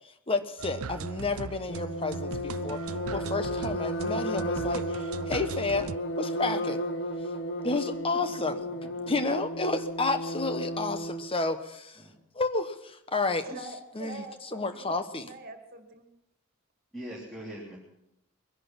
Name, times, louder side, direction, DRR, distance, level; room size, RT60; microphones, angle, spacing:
voice 1, 0.3-2.8 3.1-5.9 6.2-6.8 7.6-8.5 9.1-12.0 12.3-13.5 14.0-14.2 14.5-15.3, left 3 dB, 25° left, 9 dB, 1.1 m, -30 dB
sound 1, 0.6-6.0, right 5 dB, 75° right, 0.5 m, -39 dB
sound 2, 1.7-11.3, equal, 55° left, 1.6 m, -34 dB
voice 2, 8.6-9.1 11.9-12.1 16.9-17.8, equal, ahead, -6 dB, 3.5 m, -42 dB
voice 3, 13.4-14.9 15.2-16.1, right 3 dB, 45° right, 5 dB, 2.3 m, -44 dB
22.0 x 11.0 x 5.9 m, 0.84 s
head